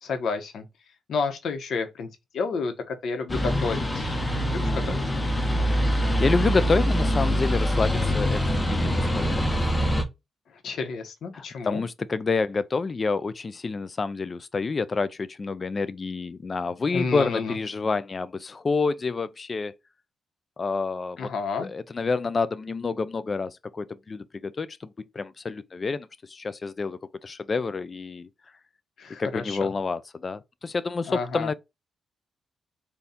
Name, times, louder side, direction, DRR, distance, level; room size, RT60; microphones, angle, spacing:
voice 1, 0.0-0.7 1.1-2.1 2.3-4.1 4.5-5.0 10.6-11.8 16.9-17.6 21.2-21.7 29.0-29.7 31.1-31.5, left 4 dB, 65° left, 0.8 m, -30 dB
sound 1, 3.3-10.0, equal, 15° left, 0.7 m, -24 dB
voice 2, 4.6-5.0 6.2-9.8 11.3-19.7 20.6-21.3 21.6-28.3 29.2-31.5, left 4 dB, 30° left, 0.3 m, -28 dB
4.1 x 2.3 x 3.6 m
cardioid pair, 125°, 0 cm